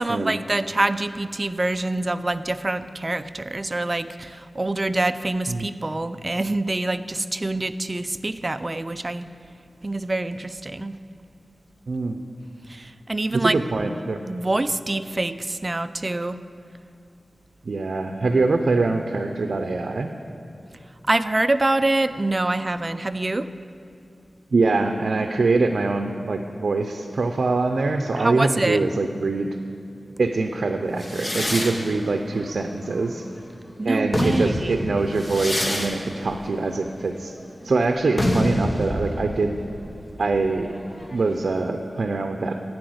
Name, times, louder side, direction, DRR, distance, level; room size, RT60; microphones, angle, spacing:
voice 1, 0.0-9.3 9.8-10.9 12.7-13.6 14.3-16.4 21.1-23.5 28.2-28.8 33.8-34.7, right 2 dB, 30° right, 11 dB, 0.4 m, -25 dB
voice 2, 11.9-12.2 13.3-14.2 17.7-20.1 24.5-29.5 30.2-33.2 33.8-37.3 37.6-39.6 40.2-40.7 41.1-42.6, right 3 dB, 75° right, 5 dB, 0.6 m, -24 dB
sound 1, 31.0-33.5 33.9-41.4, left 1 dB, 30° left, 1.3 m, -28 dB
10.5 x 8.6 x 7.8 m, 2.5 s
wide cardioid pair, 100°, 0 cm